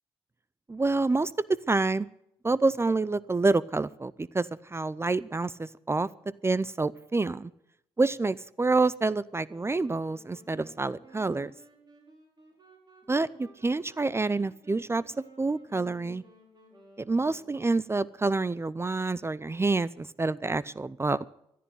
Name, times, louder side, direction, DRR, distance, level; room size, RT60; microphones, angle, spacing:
voice 1, 0.7-2.1 2.4-6.1 6.4-7.5 8.0-11.5 13.1-15.0 15.4-16.2 17.0-21.3, right 3 dB, 20° right, 20 dB, 0.5 m, -27 dB
sound 1, 9.4-17.9, right 1 dB, 40° right, 5.4 m, -56 dB
14.0 x 10.5 x 7.9 m, 0.77 s
supercardioid pair, 55°, 11 cm